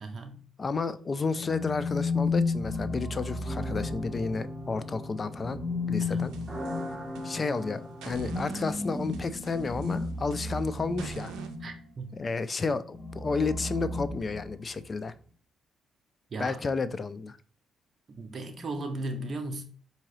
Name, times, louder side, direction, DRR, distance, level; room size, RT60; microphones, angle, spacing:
voice 1, 0.0-0.4 6.0-6.3 11.6-12.1 16.3-16.6 18.2-19.6, right 2 dB, 40° right, 0.6 m, -36 dB
voice 2, 0.6-5.6 5.9-6.3 7.2-11.3 12.2-15.1 16.4-17.4, left 4 dB, 35° left, 0.3 m, -31 dB
sound 1, 1.3-4.6 5.3-11.9 12.9-14.8, left 3 dB, 5° left, 0.9 m, -33 dB
sound 2, 3.4-8.8, equal, 20° right, 1.1 m, -40 dB
sound 3, 6.2-7.6 8.0-11.6, right 6 dB, 90° right, 0.5 m, -46 dB
4.6 x 2.8 x 3.0 m
cardioid pair, 90°, 0 cm